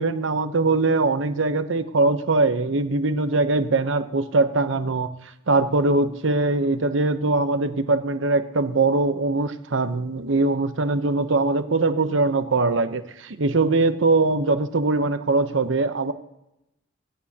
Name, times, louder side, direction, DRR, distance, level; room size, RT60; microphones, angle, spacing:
voice 1, 0.0-5.1 5.5-16.1, right 3 dB, 75° right, 10 dB, 0.8 m, -22 dB
26.0 x 8.7 x 2.9 m, 0.88 s
head